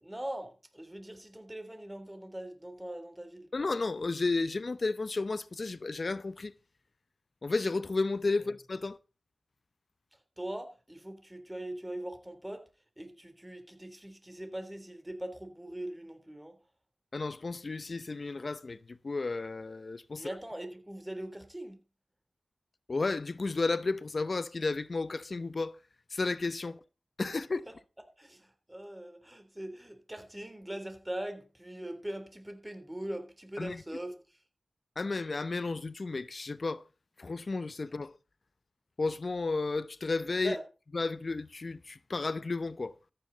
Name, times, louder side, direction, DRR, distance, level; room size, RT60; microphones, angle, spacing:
voice 1, 0.0-3.5 10.1-12.7 13.0-16.6 20.2-21.8 27.7-27.8 28.2-34.4 40.4-40.6, right 1 dB, 15° right, 3.3 m, -41 dB
voice 2, 3.5-6.5 7.4-9.0 17.1-20.3 22.9-25.8 26.1-26.8 27.2-27.6 33.6-33.8 35.0-36.8 37.2-38.2 39.0-40.6 40.9-43.0, left 3 dB, 60° left, 0.7 m, -32 dB
14.0 x 10.0 x 4.0 m
cardioid pair, 45°, 0 cm